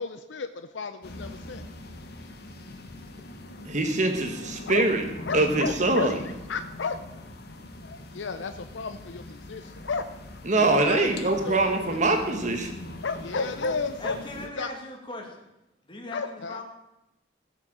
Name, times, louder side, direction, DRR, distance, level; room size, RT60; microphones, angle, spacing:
voice 1, 0.0-1.6 4.7-4.9 5.3-7.0 7.8-10.1 10.5-12.0 13.0-14.7 16.1-16.6, left 4 dB, 75° left, 9 dB, 0.6 m, -33 dB
sound 1, 1.0-14.5, left 1 dB, 55° left, 1.4 m, -42 dB
voice 2, 3.7-5.0 5.3-6.2 10.4-12.7, right 2 dB, 40° right, 5 dB, 1.3 m, -23 dB
voice 3, 14.0-15.5 15.8-16.6, left 2 dB, 25° left, 1 dB, 2.4 m, -39 dB
15.5 x 6.4 x 7.4 m, 0.91 s
head